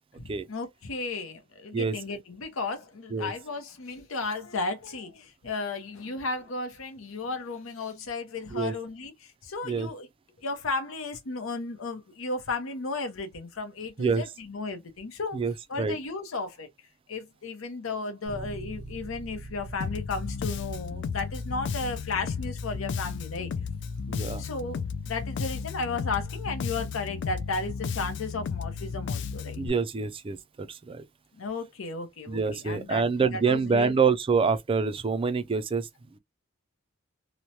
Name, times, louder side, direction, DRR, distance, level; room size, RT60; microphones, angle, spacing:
voice 1, 0.2-10.1 10.4-15.4 15.7-16.7 17.1-23.5 24.4-24.8 25.1-29.6 31.4-33.0 33.3-33.9, left 3 dB, 80° left, 0.7 m, -34 dB
voice 2, 15.3-16.0 24.1-24.4 29.6-31.0 32.3-35.9, right 5 dB, 25° right, 0.3 m, -26 dB
Bass guitar, 18.3-28.1, right 1 dB, 15° left, 1.0 m, -46 dB
Bass guitar 2, 19.8-29.7, left 6 dB, 60° left, 0.3 m, -34 dB
3.0 x 2.1 x 2.7 m
head